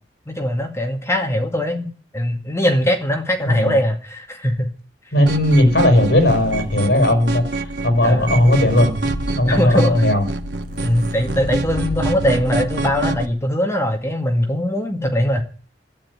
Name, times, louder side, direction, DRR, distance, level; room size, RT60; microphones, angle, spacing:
voice 1, 0.3-4.7 8.0-8.3 9.5-10.1 10.8-15.4, equal, 15° left, 3 dB, 2.0 m, -21 dB
voice 2, 5.1-8.9 9.4-10.2, left 1 dB, 65° left, 5 dB, 5.7 m, -16 dB
sound 1, 5.3-13.2, right 2 dB, 70° right, 1.4 m, -27 dB
sound 2, 6.1-7.3 8.0-9.3 10.2-10.3 10.4-12.5, equal, 50° right, 5.7 m, -32 dB
12.0 x 9.8 x 9.7 m, 0.41 s
head